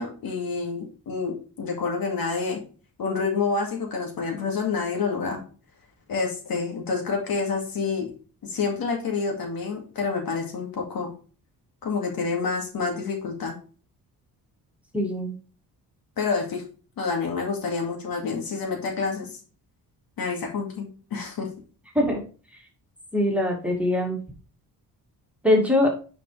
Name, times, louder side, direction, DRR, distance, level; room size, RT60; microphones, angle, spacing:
voice 1, 0.0-2.6 3.0-5.4 6.1-8.1 8.4-11.1 11.8-13.6 16.2-16.6 17.0-19.3 20.2-21.5, left 4 dB, 65° left, 1 dB, 2.3 m, -28 dB
voice 2, 14.9-15.3 21.9-22.2 23.1-24.2 25.4-25.9, left 1 dB, 5° right, -1 dB, 2.3 m, -22 dB
9.0 x 5.2 x 3.3 m, 0.37 s
cardioid pair, 120°, 38 cm